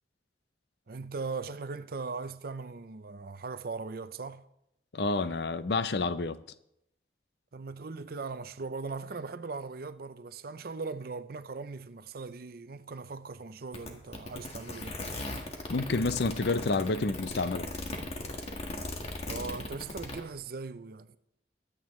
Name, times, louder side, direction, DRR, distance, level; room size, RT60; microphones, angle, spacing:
voice 1, 0.9-4.5 7.5-15.0 19.3-21.2, right 4 dB, 55° right, 0.5 m, -39 dB
voice 2, 4.9-6.4 15.7-17.7, left 3 dB, 65° left, 0.6 m, -29 dB
sound 1, 13.7-20.2, left 2 dB, 35° left, 1.7 m, -38 dB
22.5 x 9.1 x 3.2 m
head